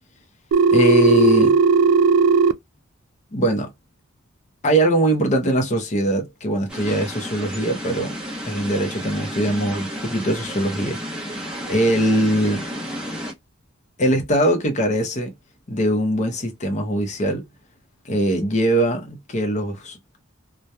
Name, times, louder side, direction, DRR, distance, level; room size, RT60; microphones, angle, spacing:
Telephone, 0.5-2.5, right 4 dB, 65° right, 0.3 m, -16 dB
voice 1, 0.7-1.6 3.3-3.7 4.6-8.2 8.4-11.0 11.7-12.6 14.0-15.3 15.7-17.4 18.0-20.0, right 1 dB, 35° left, 0.6 m, -21 dB
sound 1, 6.7-13.3, equal, 5° right, 0.8 m, -32 dB
2.8 x 2.1 x 2.2 m
head